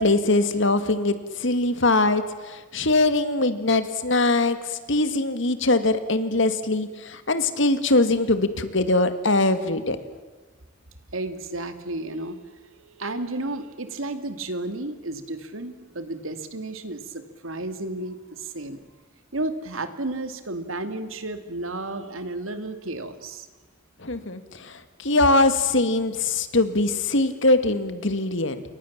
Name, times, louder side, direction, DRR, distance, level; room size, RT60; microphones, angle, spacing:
voice 1, 0.0-10.0 24.0-28.6, left 2 dB, 65° left, 10 dB, 2.1 m, -22 dB
voice 2, 11.1-18.8 19.3-23.5, right 2 dB, 85° right, 9 dB, 2.5 m, -32 dB
29.0 x 23.5 x 7.4 m, 1.4 s
head